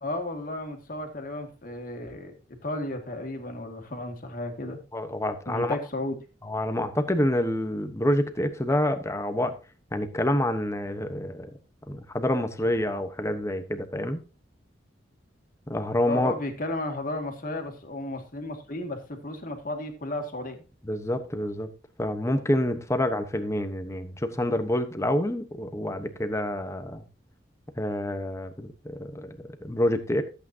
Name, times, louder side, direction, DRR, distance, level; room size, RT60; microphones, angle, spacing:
voice 1, 0.0-4.8 5.5-6.2 16.1-20.6, left 1 dB, 45° left, 4 dB, 2.2 m, -34 dB
voice 2, 4.9-5.8 6.4-9.5 9.9-11.5 11.9-14.2 15.7-16.3 20.9-21.7 22.0-27.0 27.8-30.2, left 1 dB, 15° left, 8 dB, 1.1 m, -27 dB
14.0 x 8.5 x 2.8 m, 0.32 s
head